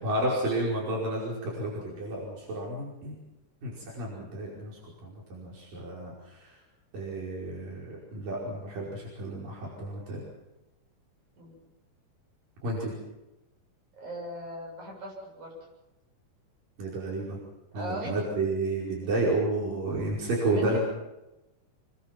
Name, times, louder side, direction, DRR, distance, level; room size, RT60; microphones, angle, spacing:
voice 1, 0.0-3.2 3.6-6.6 6.9-10.2 12.6-12.9 16.8-17.4 17.7-20.8, right 2 dB, 90° right, -4 dB, 6.9 m, -31 dB
voice 2, 14.0-15.5 17.8-18.1 20.5-20.8, equal, 60° right, -1 dB, 9.4 m, -39 dB
26.5 x 23.5 x 6.0 m, 0.97 s
omnidirectional pair, 3.8 m